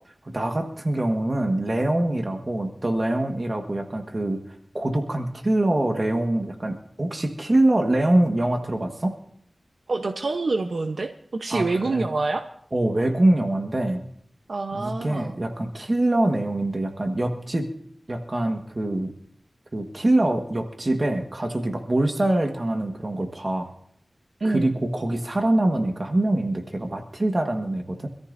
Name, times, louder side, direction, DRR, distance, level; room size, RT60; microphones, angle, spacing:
voice 1, 0.3-4.4 4.7-9.1 11.5-12.1 12.7-14.0 14.7-17.7 18.1-19.1 19.7-23.7 24.4-28.1, right 1 dB, 45° right, 4 dB, 1.4 m, -24 dB
voice 2, 9.9-12.5 14.5-15.3 24.4-24.7, right 3 dB, 75° right, 5 dB, 0.8 m, -26 dB
25.5 x 14.0 x 2.6 m, 0.66 s
wide cardioid pair, 65°, 0 cm